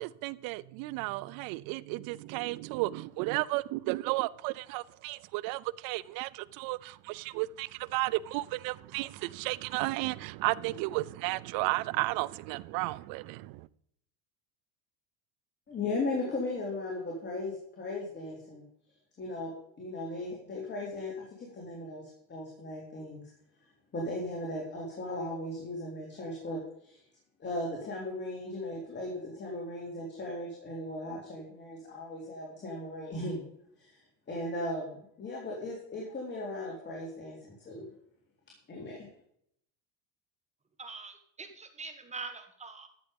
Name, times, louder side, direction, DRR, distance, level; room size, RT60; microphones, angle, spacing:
voice 1, 0.0-13.5, right 20 dB, 60° right, 0.6 m, -33 dB
voice 2, 15.7-18.6 19.2-23.2 23.9-27.0 27.4-33.5 33.8-34.0 34.3-37.9 38.7-39.1, left 2 dB, 25° left, 3.5 m, -37 dB
voice 3, 40.8-42.9, right 4 dB, 15° right, 1.5 m, -43 dB
13.0 x 8.1 x 5.3 m
supercardioid pair, 125°, 39 cm